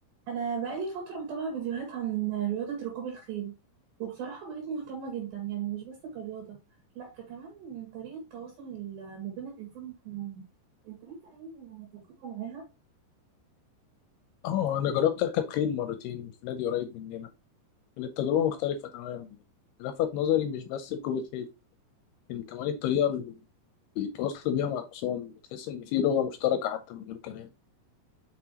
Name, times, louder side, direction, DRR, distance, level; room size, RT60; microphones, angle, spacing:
voice 1, 0.3-3.5 4.0-6.6 6.9-10.4 10.8-12.7, right 8 dB, 65° right, 3.2 m, -36 dB
voice 2, 14.4-17.3 18.0-19.3 19.8-21.5 22.3-23.3 24.0-27.5, left 9 dB, 80° left, 2.5 m, -29 dB
6.2 x 5.8 x 2.9 m
omnidirectional pair, 5.0 m